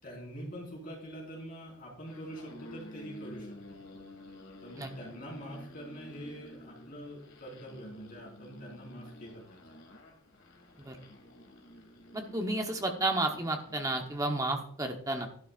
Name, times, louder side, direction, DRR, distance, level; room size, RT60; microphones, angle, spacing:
voice 1, 0.0-3.5 4.6-9.6, equal, 45° left, -4 dB, 5.0 m, -44 dB
sound 1, 2.1-14.2, left 1 dB, 75° left, 2.0 m, -51 dB
voice 2, 12.1-15.3, right 2 dB, 15° right, 3 dB, 1.0 m, -32 dB
11.5 x 11.0 x 2.5 m, 0.63 s
head